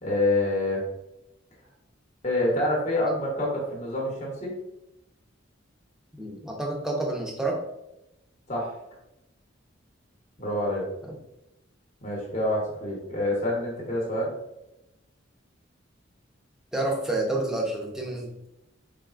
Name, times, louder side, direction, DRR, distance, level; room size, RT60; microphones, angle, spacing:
voice 1, 0.0-0.8 2.2-4.6 8.5-8.8 10.4-10.9 12.0-14.3, left 1 dB, 35° left, -2 dB, 0.9 m, -27 dB
voice 2, 6.2-7.6 11.0-11.2 16.7-18.5, right 2 dB, 5° right, -1 dB, 0.6 m, -29 dB
4.1 x 3.4 x 2.4 m, 0.89 s
head